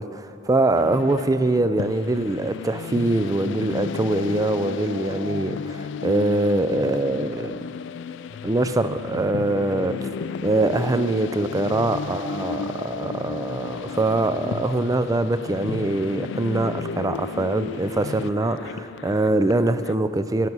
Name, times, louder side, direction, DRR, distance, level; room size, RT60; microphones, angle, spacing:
voice 1, 0.0-7.6 8.4-10.1 10.4-20.5, right 2 dB, 15° right, 12 dB, 0.4 m, -23 dB
sound 1, 0.7-19.9, left 6 dB, 60° left, 0.3 m, -33 dB
14.0 x 11.0 x 6.1 m, 2.8 s
head